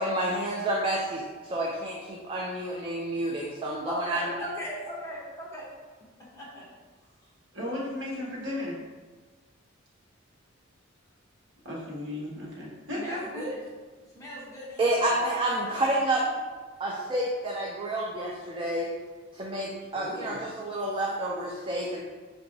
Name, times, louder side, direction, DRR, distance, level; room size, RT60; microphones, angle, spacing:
voice 1, 0.0-4.3 14.8-16.2 16.8-18.9 19.3-22.0, right 1 dB, 25° right, -2 dB, 0.3 m, -29 dB
voice 2, 3.9-5.7 6.3-6.7 12.9-13.6 14.1-15.4 19.9-20.5, equal, 15° left, -7 dB, 1.0 m, -38 dB
voice 3, 7.5-8.7 11.6-13.4, left 1 dB, 60° right, -5 dB, 1.2 m, -35 dB
4.4 x 2.9 x 2.6 m, 1.4 s
head